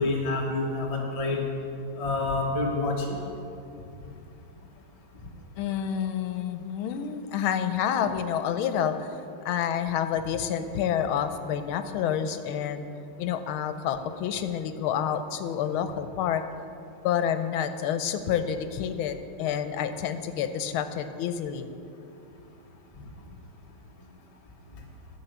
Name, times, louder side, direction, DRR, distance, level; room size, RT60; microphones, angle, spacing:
voice 1, 0.0-1.4 2.0-3.2, left 2 dB, 20° left, -1 dB, 1.0 m, -27 dB
voice 2, 5.6-9.1 9.4-12.8 13.2-16.5 17.0-21.7, left 8 dB, 85° left, 10 dB, 1.5 m, -28 dB
11.0 x 7.3 x 6.9 m, 2.7 s
omnidirectional pair, 2.3 m